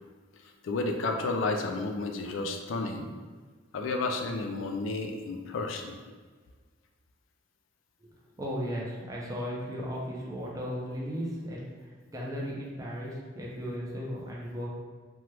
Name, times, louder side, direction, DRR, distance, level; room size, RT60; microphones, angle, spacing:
voice 1, 0.6-3.0 3.7-6.0, left 3 dB, 85° left, 4 dB, 0.4 m, -31 dB
voice 2, 8.0-14.7, equal, 20° right, -4 dB, 0.5 m, -36 dB
2.9 x 2.2 x 3.1 m, 1.5 s
head